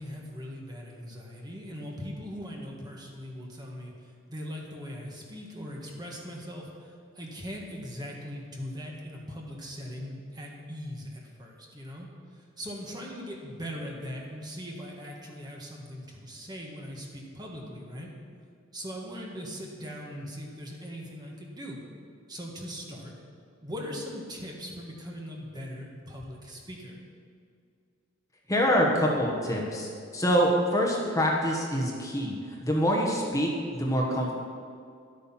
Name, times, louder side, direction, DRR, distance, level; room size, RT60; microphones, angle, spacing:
voice 1, 0.0-12.1 12.6-18.1 18.7-21.8 22.3-23.2 23.6-27.0, equal, 20° right, -1 dB, 1.6 m, -40 dB
voice 2, 28.5-34.3, equal, 15° left, -1 dB, 1.4 m, -26 dB
11.5 x 8.4 x 5.8 m, 2.3 s
head